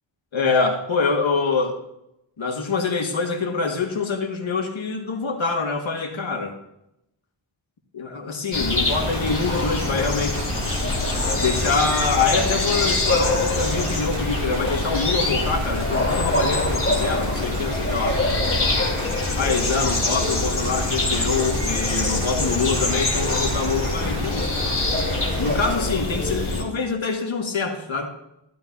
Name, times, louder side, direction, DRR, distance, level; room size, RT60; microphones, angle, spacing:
voice 1, 0.3-1.8 2.4-6.5 7.9-10.5 11.4-18.2 19.3-24.5 25.4-28.1, left 4 dB, 75° left, 3 dB, 1.8 m, -25 dB
sound 1, 8.5-26.6, left 2 dB, 25° left, 2.5 m, -24 dB
sound 2, 8.9-25.7, right 2 dB, 65° right, 3.1 m, -34 dB
15.0 x 12.5 x 2.7 m, 0.84 s
wide cardioid pair, 140°, 47 cm